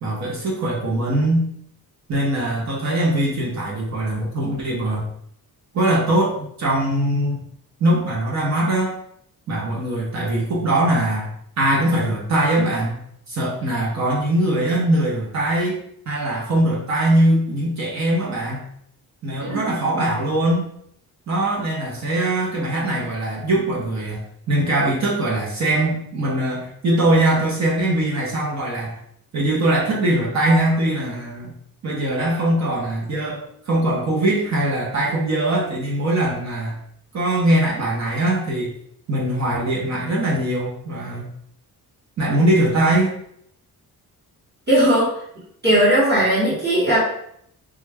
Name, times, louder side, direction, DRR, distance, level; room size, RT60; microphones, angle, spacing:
voice 1, 0.0-1.5 2.1-5.1 5.7-7.5 7.8-9.0 9.5-11.3 11.6-12.9 13.3-15.8 16.1-18.7 19.2-20.7 21.3-24.2 24.5-29.0 29.3-31.5 31.8-36.8 37.1-38.8 39.1-41.3 42.2-43.2, right 1 dB, 45° right, -4 dB, 0.9 m, -21 dB
voice 2, 19.4-19.8 44.7-45.1 45.6-47.0, right 1 dB, 30° right, -8 dB, 1.2 m, -18 dB
3.2 x 2.4 x 3.4 m, 0.69 s
wide cardioid pair, 160°, 37 cm